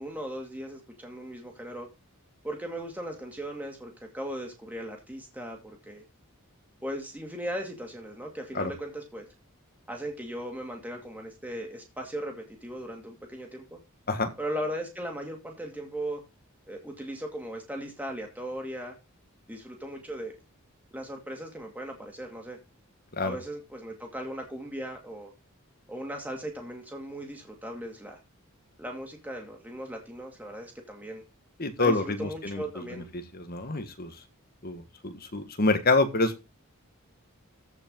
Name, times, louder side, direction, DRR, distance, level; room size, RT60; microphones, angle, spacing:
voice 1, 0.0-1.9 2.4-6.0 6.8-9.3 9.9-13.8 14.4-16.2 16.7-18.9 19.5-20.3 20.9-22.6 23.2-25.3 25.9-28.2 28.8-31.2 31.8-33.1, right 1 dB, 10° right, 2.4 m, -38 dB
voice 2, 31.6-32.6 33.3-34.1 34.6-36.4, left 3 dB, 45° left, 1.6 m, -27 dB
14.5 x 5.4 x 3.8 m
head